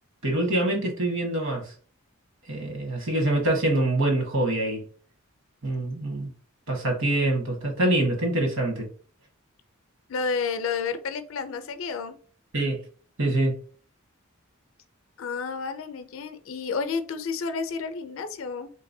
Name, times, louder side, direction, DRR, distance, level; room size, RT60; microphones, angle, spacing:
voice 1, 0.2-1.7 2.5-4.8 5.6-6.3 6.7-8.9 12.5-12.8 13.2-13.6, right 1 dB, 60° right, 1.2 m, -25 dB
voice 2, 10.1-12.2 15.2-18.7, left 5 dB, 65° left, 0.5 m, -31 dB
3.2 x 2.9 x 2.6 m
head